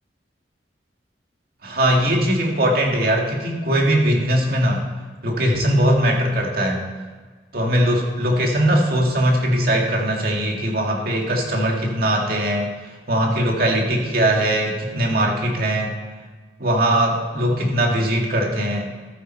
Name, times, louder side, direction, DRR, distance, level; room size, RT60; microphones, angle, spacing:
voice 1, 1.6-4.8 5.2-6.9 7.5-15.9 16.6-18.9, right 1 dB, 55° right, 0 dB, 2.1 m, -20 dB
13.5 x 8.5 x 4.5 m, 1.4 s
head